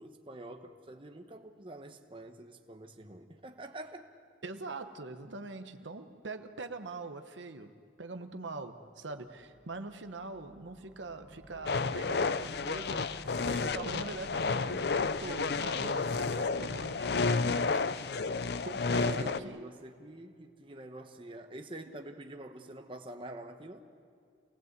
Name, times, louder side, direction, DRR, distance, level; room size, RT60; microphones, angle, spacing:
voice 1, 0.0-4.1 18.9-23.8, right 1 dB, 30° right, 6 dB, 1.0 m, -46 dB
voice 2, 4.4-13.1 13.4-18.2 18.7-19.7 21.9-22.0, right 3 dB, 90° right, 7 dB, 1.2 m, -43 dB
sound 1, 9.2-18.0, equal, 10° right, 1.8 m, -53 dB
sound 2, 11.7-19.4, left 4 dB, 60° left, 0.6 m, -31 dB
27.5 x 19.0 x 8.2 m, 2.3 s
head